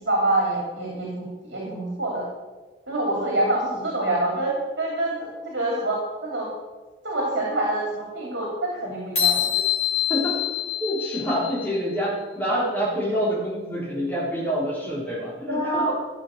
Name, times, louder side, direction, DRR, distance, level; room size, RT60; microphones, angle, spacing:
voice 1, 0.0-1.2 1.5-2.3 2.9-6.5 7.0-9.4 15.5-15.9, right 1 dB, 85° right, -3 dB, 3.0 m, -26 dB
sound 1, 9.2-11.8, left 11 dB, 40° left, 3.3 m, -25 dB
voice 2, 10.8-15.9, equal, 10° left, -5 dB, 3.8 m, -26 dB
14.5 x 7.0 x 6.6 m, 1.3 s
head